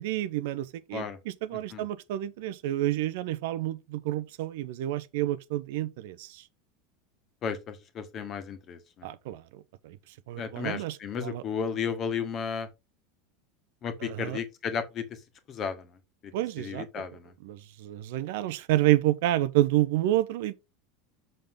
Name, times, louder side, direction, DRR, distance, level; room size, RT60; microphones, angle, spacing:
voice 1, 0.0-6.4 9.0-10.0 10.3-11.4 14.0-14.4 16.3-17.0 17.4-20.5, right 14 dB, 55° right, 0.7 m, -29 dB
voice 2, 7.4-9.1 10.4-12.7 13.8-15.0 15.5-15.9 16.2-16.3 16.6-17.3, left 6 dB, 35° left, 1.7 m, -34 dB
6.7 x 6.3 x 3.8 m
figure-of-eight pair, 80°, 0 cm